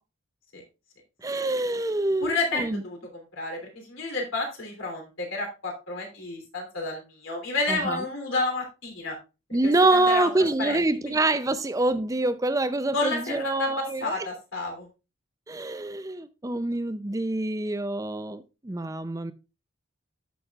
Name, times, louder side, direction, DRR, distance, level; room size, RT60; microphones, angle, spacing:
voice 1, 1.2-2.8 7.7-8.1 9.5-14.3 15.5-19.3, right 2 dB, 15° right, 0.5 m, -26 dB
voice 2, 2.2-3.0 3.4-9.1 9.6-11.2 12.9-14.9, left 2 dB, 80° left, 3.1 m, -31 dB
13.5 x 6.2 x 2.4 m
head